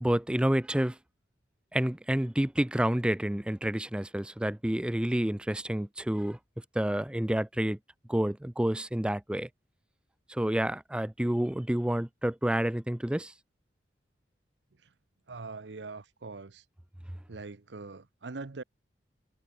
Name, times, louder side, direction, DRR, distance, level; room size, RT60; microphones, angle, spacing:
voice 1, 0.0-1.0 1.7-6.4 6.8-7.8 8.1-9.5 10.3-13.3, right 1 dB, 5° right, 0.3 m, -29 dB
voice 2, 15.3-16.6 17.3-18.6, right 3 dB, 80° right, 0.8 m, -42 dB
head